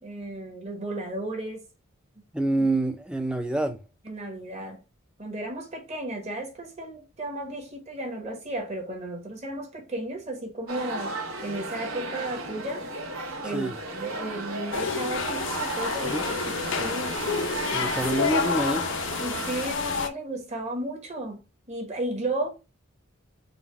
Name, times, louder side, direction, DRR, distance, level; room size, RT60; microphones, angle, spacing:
voice 1, 0.0-1.6 4.0-4.8 5.2-12.9 13.4-16.2 16.8-17.2 19.2-21.4 21.7-22.5, right 1 dB, 30° right, 1.0 m, -34 dB
voice 2, 2.3-3.8 13.5-13.8 16.0-16.2 17.7-18.9, right 2 dB, 5° right, 0.3 m, -27 dB
sound 1, 10.7-19.7, right 2 dB, 85° right, 1.1 m, -34 dB
sound 2, 14.7-20.1, left 5 dB, 60° left, 0.5 m, -29 dB
4.0 x 2.2 x 4.3 m
head